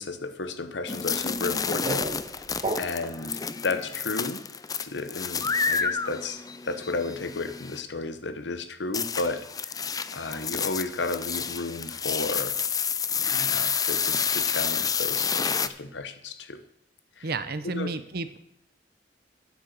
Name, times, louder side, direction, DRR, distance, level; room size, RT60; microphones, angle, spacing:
voice 1, 0.0-2.1 2.8-4.5 4.8-9.8 10.1-12.6 13.1-16.6 17.2-17.3 17.6-17.9, left 3 dB, 80° left, 9 dB, 1.1 m, -33 dB
sound 1, 0.9-7.8 8.9-15.7, left 6 dB, 20° left, 0.5 m, -29 dB
sound 2, 1.4-3.3, right 2 dB, 35° right, 1.5 m, -34 dB
voice 2, 17.2-18.4, right 3 dB, 60° right, 12 dB, 0.9 m, -31 dB
9.8 x 8.0 x 6.7 m, 0.80 s
head